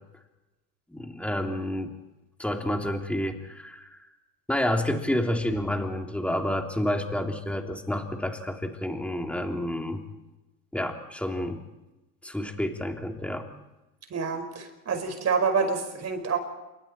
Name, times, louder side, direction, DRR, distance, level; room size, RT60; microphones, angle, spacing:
voice 1, 0.9-1.9 2.4-4.0 4.5-10.0 10.7-11.6 12.2-13.5, left 1 dB, 5° left, 3 dB, 3.1 m, -29 dB
voice 2, 14.1-16.4, right 5 dB, 35° right, 6 dB, 5.3 m, -27 dB
28.5 x 24.5 x 4.4 m, 1.0 s
supercardioid pair, 100°, 46 cm